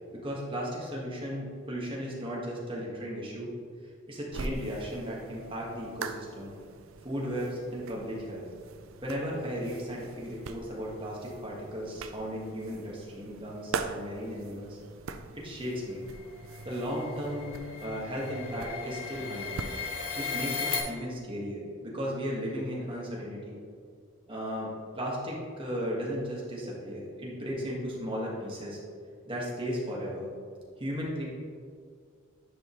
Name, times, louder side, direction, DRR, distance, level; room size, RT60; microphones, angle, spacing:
voice 1, 0.1-3.5 4.1-6.5 7.0-8.5 9.0-14.8 15.3-16.0 16.6-19.7 20.1-23.6 24.3-24.7 24.9-28.8 29.2-30.3 30.8-31.2, equal, 25° right, -4 dB, 1.7 m, -35 dB
sound 1, 4.3-19.9, right 4 dB, 75° right, 0.5 m, -42 dB
sound 2, 16.0-20.8, left 5 dB, 75° left, 1.5 m, -36 dB
10.0 x 5.4 x 3.2 m, 2.1 s
head